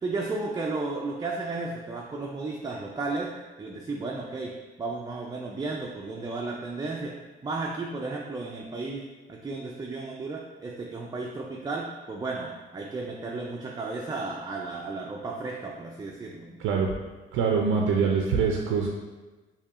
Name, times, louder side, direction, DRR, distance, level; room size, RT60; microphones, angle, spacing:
voice 1, 0.0-3.3 3.6-4.5 4.8-7.1 7.4-16.6, right 3 dB, 20° right, -2 dB, 0.3 m, -34 dB
voice 2, 17.3-18.9, right 5 dB, 90° right, 1 dB, 0.4 m, -24 dB
4.6 x 2.8 x 2.4 m, 1.2 s
cardioid pair, 90°, 20 cm